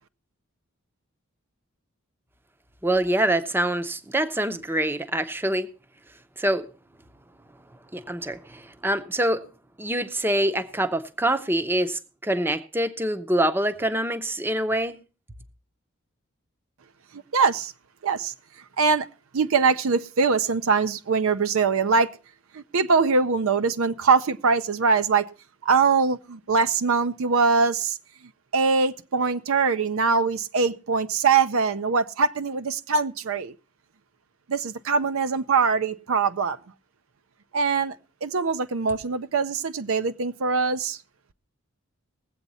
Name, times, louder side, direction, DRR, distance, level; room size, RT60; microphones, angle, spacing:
voice 1, 2.8-5.7 6.4-6.7 7.9-9.4 9.8-15.0, right 1 dB, 10° right, 0.6 m, -25 dB
voice 2, 17.1-17.7 18.0-18.3 18.8-19.1 19.3-22.1 22.5-25.3 25.6-28.0 28.5-33.5 34.5-36.6 37.5-38.0 38.2-41.0, right 5 dB, 75° right, 0.5 m, -22 dB
19.5 x 8.1 x 4.1 m
head